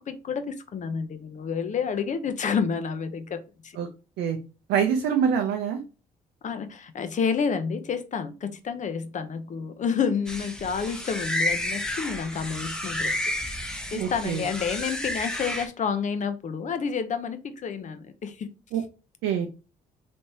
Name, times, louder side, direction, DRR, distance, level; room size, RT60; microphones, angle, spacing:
voice 1, 0.1-3.8 6.4-13.2 13.9-18.5, left 6 dB, 45° left, 9 dB, 0.6 m, -29 dB
voice 2, 4.7-5.8 13.9-14.4 18.7-18.8 19.2-19.5, right 7 dB, 75° right, 5 dB, 0.5 m, -25 dB
sound 1, 10.3-15.7, left 1 dB, 5° left, 0.8 m, -31 dB
3.3 x 3.1 x 2.7 m, 0.32 s
hypercardioid pair, 55°, 18 cm